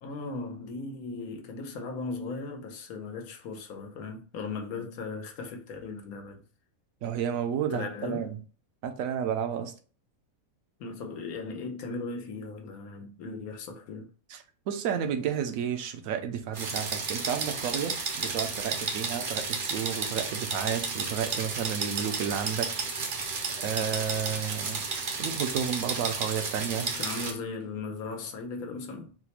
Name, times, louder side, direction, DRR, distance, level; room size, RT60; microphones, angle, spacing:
voice 1, 0.0-6.4 7.7-8.3 10.8-14.1 26.7-29.2, left 3 dB, 90° left, 1.2 m, -37 dB
voice 2, 7.0-8.4 8.8-9.7 14.3-14.4 14.7-24.8 25.2-26.9, right 8 dB, 75° right, 1.0 m, -32 dB
sound 1, 16.5-27.3, right 4 dB, 50° right, 0.7 m, -32 dB
4.0 x 2.1 x 2.9 m
omnidirectional pair, 1.5 m